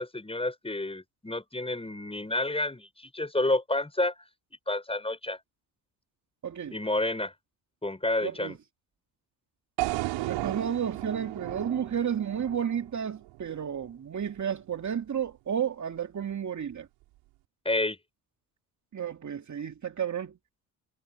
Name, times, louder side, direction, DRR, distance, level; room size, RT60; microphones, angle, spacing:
voice 1, 0.0-4.1 4.7-5.4 6.7-7.3 7.8-8.6 17.6-18.0, left 2 dB, 10° left, 6.5 m, -29 dB
voice 2, 6.4-6.8 8.2-8.5 10.1-16.9 18.9-20.3, right 8 dB, 40° right, 2.7 m, -32 dB
sound 1, 9.8-13.9, right 19 dB, 75° right, 6.0 m, -35 dB
hypercardioid pair, 65°, 46 cm